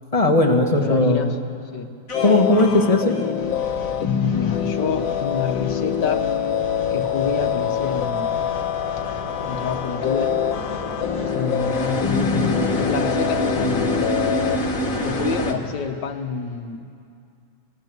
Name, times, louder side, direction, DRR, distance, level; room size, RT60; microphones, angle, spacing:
voice 1, 0.1-1.2 2.2-3.2, left 2 dB, 20° left, 2 dB, 2.1 m, -17 dB
voice 2, 0.8-1.4 1.7-1.9 4.0-6.3 6.9-8.4 9.5-10.4 11.2-14.0 15.0-16.9, left 5 dB, 70° left, 8 dB, 1.8 m, -28 dB
sound 1, 2.1-14.6, left 9 dB, 90° left, 1.7 m, -25 dB
sound 2, 2.1-15.5, left 1 dB, 45° left, 2.2 m, -29 dB
29.0 x 19.5 x 8.1 m, 2.4 s
omnidirectional pair, 2.0 m